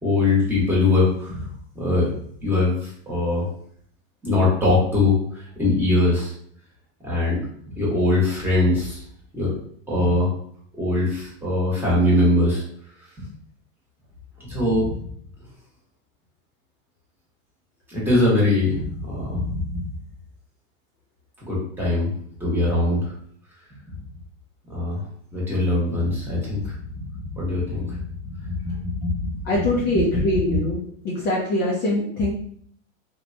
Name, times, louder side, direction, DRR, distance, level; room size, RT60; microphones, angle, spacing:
voice 1, 0.0-1.5 1.7-2.1 2.4-3.5 4.2-6.3 7.0-7.4 7.8-9.0 9.3-9.5 9.9-10.3 10.8-12.6 13.2-13.3 14.4-15.0 17.9-19.8 21.4-22.1 22.4-23.1 24.7-25.0 25.3-26.8 27.1-29.8 30.1-30.2 30.5-30.6, left 2 dB, 5° right, -7 dB, 1.0 m, -22 dB
voice 2, 29.5-32.3, left 1 dB, 25° left, -4 dB, 0.4 m, -23 dB
2.9 x 2.2 x 2.6 m, 0.63 s
supercardioid pair, 140°, 40 cm